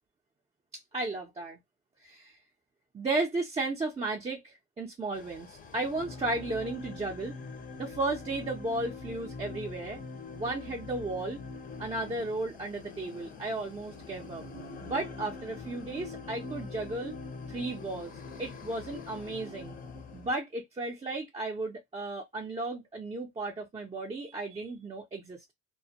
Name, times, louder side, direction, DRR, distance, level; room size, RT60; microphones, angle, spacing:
voice 1, 0.9-1.6 2.0-2.4 2.9-7.3 7.8-10.0 10.3-11.4 11.8-14.4 14.8-17.1 17.5-18.1 18.4-19.8 20.1-25.5, right 2 dB, 15° right, 0.6 m, -34 dB
sound 1, 5.1-20.3, left 4 dB, 25° left, 0.6 m, -43 dB
2.2 x 2.1 x 2.7 m
cardioid pair, 115°, 38 cm